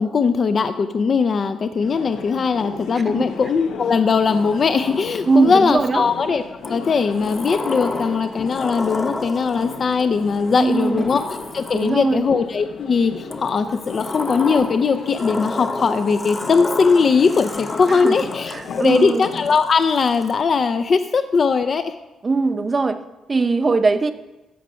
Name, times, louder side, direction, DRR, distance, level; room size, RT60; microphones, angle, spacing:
voice 1, 0.0-6.4 6.7-11.2 11.5-21.9, left 5 dB, 45° left, 9 dB, 0.5 m, -19 dB
sound 1, 1.8-19.6, left 5 dB, 75° left, 0.9 m, -36 dB
Sliding door, 4.3-5.7 6.6-12.2 13.3-20.4, left 2 dB, 25° left, 1.0 m, -32 dB
voice 2, 5.3-6.1 10.6-11.1 11.7-12.2 17.9-18.2 18.5-19.3 22.2-23.0 23.3-24.1, right 4 dB, 30° right, 9 dB, 0.8 m, -20 dB
14.5 x 5.1 x 5.6 m, 1.0 s
cardioid pair, 90°, 0 cm